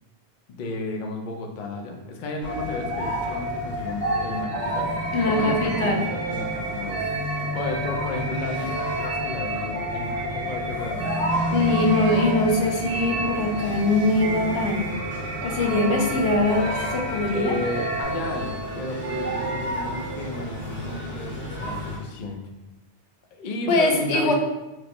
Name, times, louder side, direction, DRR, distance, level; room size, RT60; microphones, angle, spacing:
voice 1, 0.5-4.9 5.2-7.1 7.4-12.2 17.3-22.4 23.3-24.3, left 2 dB, 55° left, 2 dB, 0.6 m, -33 dB
sound 1, 2.4-22.1, equal, 15° left, 0.7 m, -33 dB
sound 2, 2.4-18.0, left 1 dB, 30° right, 0.9 m, -34 dB
sound 3, 4.0-20.4, right 3 dB, 75° right, 0.8 m, -32 dB
voice 2, 5.1-6.0 11.5-14.9 15.4-17.6 23.7-24.3, left 2 dB, 90° left, 2 dB, 0.9 m, -22 dB
4.5 x 2.0 x 2.9 m, 1.0 s
omnidirectional pair, 1.1 m